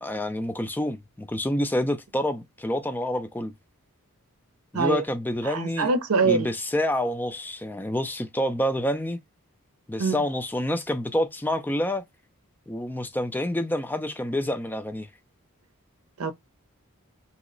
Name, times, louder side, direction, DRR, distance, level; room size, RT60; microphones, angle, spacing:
voice 1, 0.0-3.5 4.7-5.9 6.2-9.2 9.9-12.0 12.7-15.1, left 1 dB, 10° left, 0.4 m, -28 dB
voice 2, 5.4-6.5 10.0-10.2 16.2-16.3, right 4 dB, 80° right, 0.6 m, -24 dB
2.9 x 2.1 x 3.7 m
head